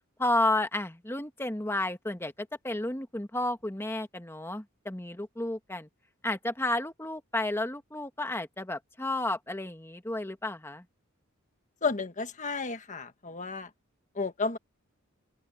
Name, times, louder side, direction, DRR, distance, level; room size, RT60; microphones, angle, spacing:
voice 1, 0.2-2.3 2.6-5.9 6.2-10.8, left 2 dB, 10° left, 1.5 m, -31 dB
voice 2, 11.8-13.7 14.1-14.6, left 4 dB, 35° left, 1.3 m, -32 dB
open air
head